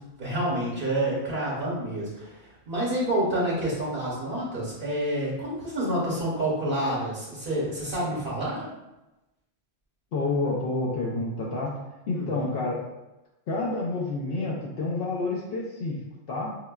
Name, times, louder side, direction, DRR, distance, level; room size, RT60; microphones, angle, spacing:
voice 1, 0.0-2.4 2.7-8.7 12.1-12.6, right 1 dB, 60° right, -6 dB, 1.0 m, -28 dB
voice 2, 10.1-11.7 12.1-12.8 13.5-16.0 16.3-16.5, left 3 dB, 65° left, -3 dB, 0.8 m, -29 dB
5.4 x 2.1 x 2.3 m, 0.99 s
omnidirectional pair, 1.1 m